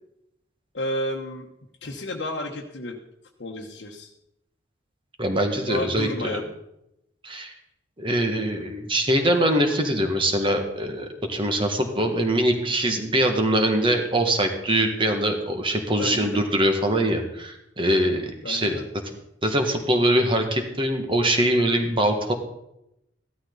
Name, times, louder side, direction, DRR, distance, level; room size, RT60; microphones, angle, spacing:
voice 1, 0.7-1.5 1.8-3.0 3.4-4.1 5.7-6.5 16.0-16.4 18.4-18.8, left 1 dB, 75° left, -1 dB, 1.2 m, -31 dB
voice 2, 5.2-6.4 7.2-7.5 8.0-18.8 19.4-22.3, right 1 dB, 30° right, 4 dB, 1.8 m, -23 dB
15.0 x 13.0 x 4.0 m, 0.82 s
head